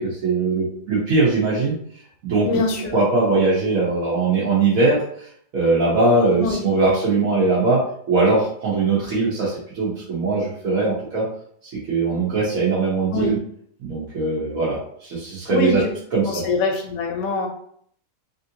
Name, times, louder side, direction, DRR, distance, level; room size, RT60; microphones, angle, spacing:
voice 1, 0.0-1.8 2.2-2.5 2.9-5.0 5.5-7.8 8.1-11.2 11.7-13.4 13.8-15.8 16.1-16.4, right 3 dB, 80° right, -9 dB, 1.4 m, -20 dB
voice 2, 2.4-3.0 6.4-6.9 13.1-13.3 15.5-15.9 16.2-17.5, left 3 dB, 80° left, 3 dB, 1.1 m, -24 dB
3.3 x 2.6 x 2.7 m, 0.62 s
omnidirectional pair, 1.5 m